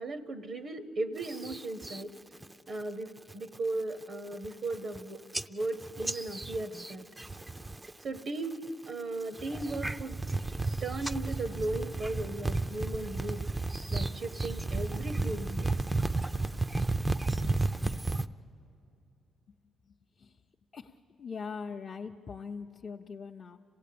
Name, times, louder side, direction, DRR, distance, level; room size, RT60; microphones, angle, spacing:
voice 1, 0.0-2.1 2.7-5.2 5.5-7.1 8.0-8.6 8.9-10.2 10.8-13.4 13.9-15.7, right 2 dB, 55° right, 10 dB, 0.8 m, -36 dB
sound 1, 1.2-2.0 2.4-2.8 3.2-3.6 4.0-4.1 4.3-5.0 5.3-7.9 8.2-8.7 9.2-18.3, right 2 dB, 15° right, 0.5 m, -33 dB
voice 2, 20.7-23.6, left 5 dB, 45° left, 0 dB, 0.7 m, -41 dB
26.5 x 17.0 x 8.5 m, 2.8 s
cardioid pair, 90°, 0 cm